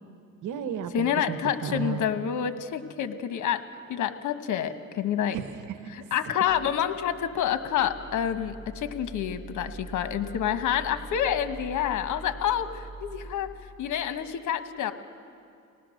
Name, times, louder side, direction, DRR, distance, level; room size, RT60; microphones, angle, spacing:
voice 1, 0.4-2.1 5.3-6.1, right 8 dB, 85° right, 10 dB, 1.2 m, -34 dB
voice 2, 0.9-3.6 3.9-5.4 6.1-13.5 13.8-14.9, left 9 dB, 75° left, 10 dB, 1.3 m, -28 dB
sound 1, 6.5-13.4, right 3 dB, 35° right, 4.1 m, -43 dB
29.5 x 19.0 x 6.4 m, 2.4 s
cardioid pair, 90°, 30 cm